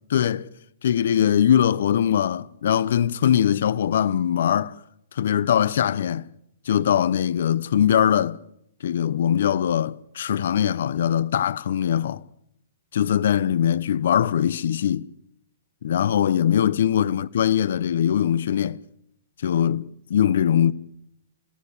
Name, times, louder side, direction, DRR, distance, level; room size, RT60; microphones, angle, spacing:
voice 1, 0.1-0.5 0.8-4.7 5.1-6.3 6.7-8.4 8.8-12.2 12.9-15.1 15.8-18.8 19.4-20.7, left 9 dB, 65° left, 1.0 m, -21 dB
29.5 x 16.0 x 8.3 m
hypercardioid pair, 130°, 0 cm